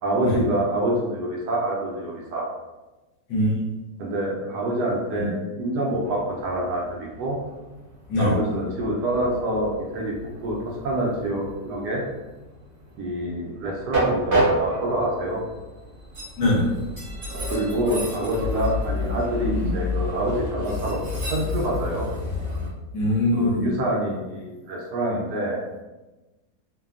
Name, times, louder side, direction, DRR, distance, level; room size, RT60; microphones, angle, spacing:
voice 1, 0.0-2.5 4.0-7.4 8.2-10.1 10.4-10.6 10.8-12.0 13.0-15.4 17.5-22.1 23.3-25.6, right 1 dB, 75° right, -2 dB, 1.1 m, -26 dB
Train, 6.0-22.7, left 1 dB, 55° right, 0.8 m, -30 dB
voice 2, 16.4-16.7 18.8-18.9 19.5-19.7 22.9-23.7, left 1 dB, 70° left, -4 dB, 1.3 m, -22 dB
3.3 x 2.2 x 2.3 m, 1.1 s
omnidirectional pair, 2.0 m